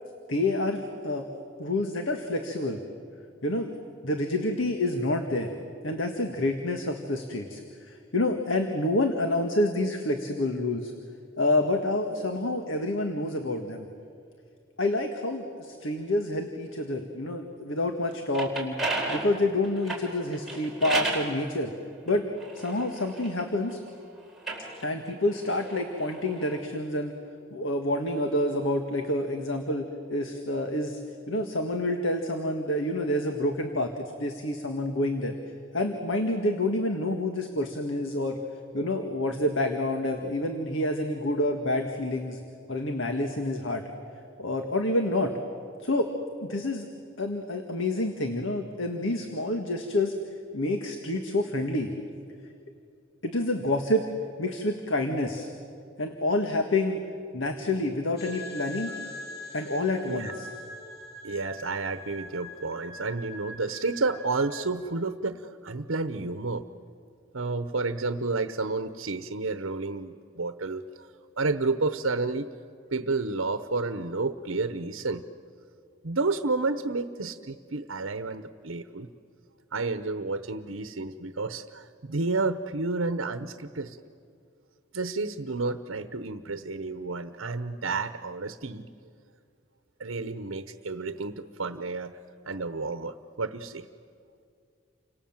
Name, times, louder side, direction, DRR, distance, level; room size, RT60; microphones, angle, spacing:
voice 1, 0.3-1.3 1.6-2.8 3.4-3.7 4.0-5.5 5.8-10.9 11.4-13.8 14.8-18.8 19.1-21.7 22.1-22.3 22.5-23.8 24.8-27.1 27.5-31.0 31.3-35.3 35.7-38.4 38.7-42.4 42.7-43.8 44.4-45.3 45.8-46.1 46.4-46.9 47.2-50.1 50.5-51.9 53.2-54.1 54.4-55.5 56.0-57.0 57.3-58.9 59.5-60.5, left 1 dB, 70° left, 4 dB, 1.8 m, -28 dB
sound 1, 18.1-21.3 22.1-23.8 24.3-26.6, right 3 dB, ahead, 4.2 m, -34 dB
sound 2, 58.2-64.6, left 1 dB, 50° left, 2.5 m, -42 dB
voice 2, 61.2-66.7 67.3-71.1 71.4-72.5 72.9-75.3 76.0-79.1 79.7-84.0 84.9-88.9 90.0-92.2 92.5-93.9, right 3 dB, 80° right, 10 dB, 1.0 m, -31 dB
30.0 x 26.0 x 7.4 m, 2.3 s
head